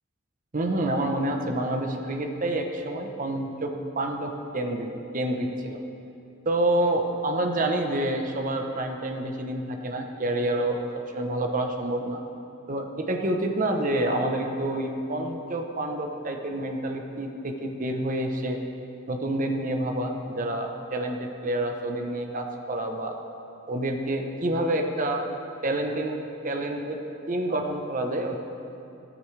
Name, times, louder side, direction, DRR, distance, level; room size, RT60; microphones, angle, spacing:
voice 1, 0.5-4.9 5.1-5.8 6.4-10.8 11.1-12.2 12.7-18.6 19.1-23.2 23.7-25.3 25.6-26.2 26.4-27.0 27.3-28.4, right 1 dB, 40° right, 3 dB, 0.9 m, -28 dB
14.5 x 13.0 x 3.3 m, 2.8 s
head